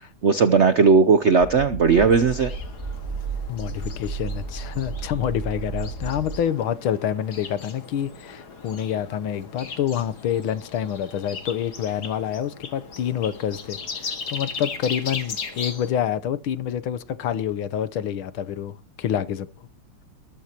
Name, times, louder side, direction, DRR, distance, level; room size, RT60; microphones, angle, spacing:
voice 1, 0.2-2.5, right 5 dB, 70° right, 0.6 m, -17 dB
sound 1, 1.4-6.4, right 4 dB, 25° right, 2.1 m, -33 dB
sound 2, 1.9-15.9, left 5 dB, 50° left, 2.4 m, -38 dB
voice 2, 3.5-19.5, left 9 dB, 75° left, 1.7 m, -27 dB
21.0 x 14.0 x 3.0 m
omnidirectional pair, 2.4 m